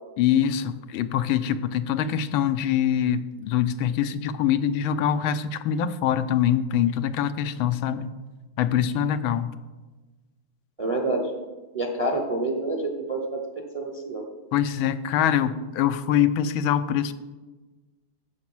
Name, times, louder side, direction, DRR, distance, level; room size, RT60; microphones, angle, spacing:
voice 1, 0.2-8.1 8.6-9.5 14.5-17.1, left 9 dB, 85° left, 11 dB, 1.4 m, -24 dB
voice 2, 10.8-11.2 11.7-13.4 13.7-14.2, right 2 dB, 25° right, 3 dB, 0.8 m, -27 dB
14.5 x 5.1 x 6.1 m, 1.2 s
omnidirectional pair, 2.2 m